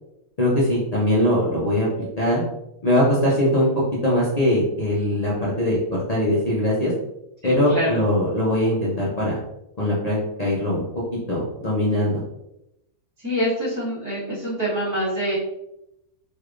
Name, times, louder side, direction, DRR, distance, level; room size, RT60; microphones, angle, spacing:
voice 1, 0.4-2.4 2.8-3.7 4.0-6.9 7.4-9.4 9.8-10.8 11.1-12.2, left 1 dB, 40° left, -7 dB, 0.6 m, -21 dB
voice 2, 7.4-8.0 13.2-15.3, equal, 15° right, -11 dB, 1.2 m, -25 dB
3.3 x 3.2 x 2.4 m, 0.85 s
omnidirectional pair, 1.5 m